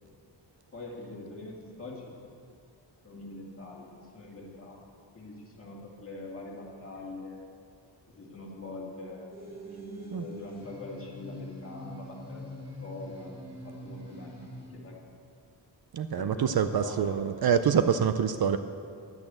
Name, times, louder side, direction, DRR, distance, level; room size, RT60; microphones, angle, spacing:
voice 1, 0.7-2.1 3.0-4.8 5.1-7.5 8.1-9.4 10.1-13.3 13.6-15.0 16.2-17.5, left 2 dB, 30° left, -3 dB, 2.2 m, -43 dB
sound 1, 9.3-14.7, left 1 dB, 25° right, 3.7 m, -44 dB
voice 2, 15.9-18.6, right 7 dB, 55° right, 10 dB, 0.5 m, -26 dB
11.0 x 8.6 x 7.6 m, 2.3 s
wide cardioid pair, 160°, 45 cm